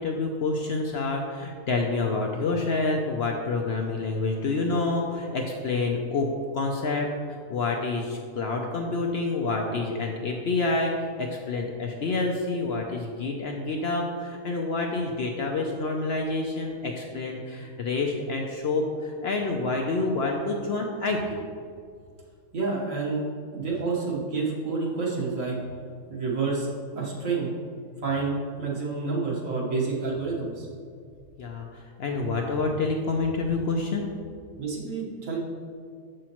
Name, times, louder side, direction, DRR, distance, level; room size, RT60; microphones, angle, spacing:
voice 1, 0.0-6.3 6.5-7.1 7.5-21.4 31.4-34.0, left 3 dB, 60° left, 1 dB, 0.7 m, -28 dB
voice 2, 22.5-23.3 23.5-25.6 26.1-26.7 26.9-27.5 28.0-30.7 34.6-35.4, right 4 dB, 70° right, -4 dB, 1.6 m, -29 dB
7.0 x 6.3 x 2.9 m, 2.2 s
omnidirectional pair, 1.5 m